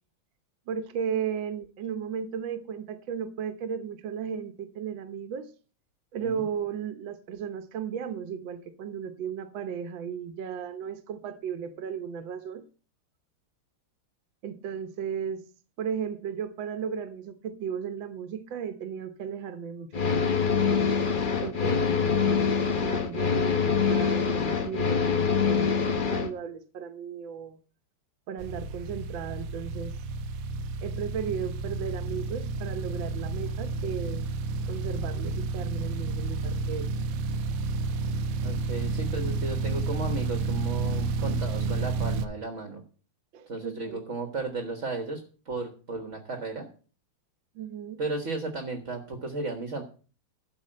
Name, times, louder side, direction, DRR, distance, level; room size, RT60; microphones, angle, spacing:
voice 1, 0.7-5.5 6.1-12.6 14.4-15.4 15.8-20.4 21.4-22.4 22.8-27.6 28.3-30.0 30.8-34.3 34.7-36.9 43.3-44.0 47.6-48.0, right 7 dB, 65° right, 1.7 m, -35 dB
sound 1, 19.9-26.3, left 6 dB, 55° left, 0.5 m, -25 dB
voice 2, 21.4-21.9 38.4-42.8 43.5-46.7 48.0-49.8, right 3 dB, 40° right, 1.5 m, -34 dB
sound 2, 28.4-42.3, right 3 dB, 85° right, 1.6 m, -31 dB
12.5 x 5.0 x 7.6 m
omnidirectional pair, 2.3 m